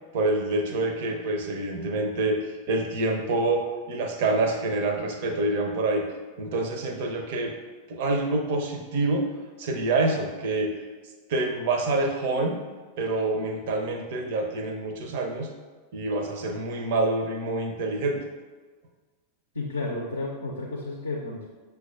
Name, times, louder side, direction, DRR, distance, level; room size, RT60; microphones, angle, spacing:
voice 1, 0.1-6.1 6.4-7.5 7.9-9.3 9.6-10.8 11.3-12.6 13.0-15.5 15.9-18.3, right 2 dB, 50° right, 4 dB, 0.5 m, -27 dB
voice 2, 19.5-21.5, left 2 dB, 80° left, -1 dB, 0.4 m, -32 dB
5.9 x 2.2 x 2.4 m, 1.4 s
figure-of-eight pair, 90°, 0 cm